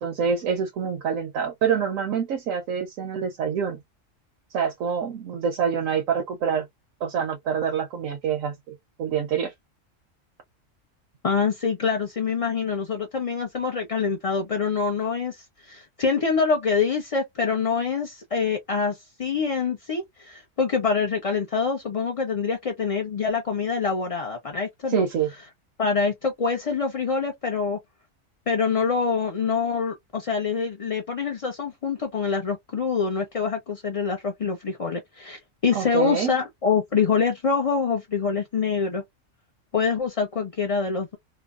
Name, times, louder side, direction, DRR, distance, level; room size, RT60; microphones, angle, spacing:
voice 1, 0.0-3.8 4.5-6.7 7.0-9.5 24.9-25.3 35.7-36.3, right 7 dB, 85° right, 1.0 m, -26 dB
voice 2, 11.2-25.1 25.8-27.8 28.5-39.0 39.7-41.2, left 5 dB, 65° left, 0.3 m, -25 dB
2.9 x 2.0 x 2.3 m
omnidirectional pair, 1.3 m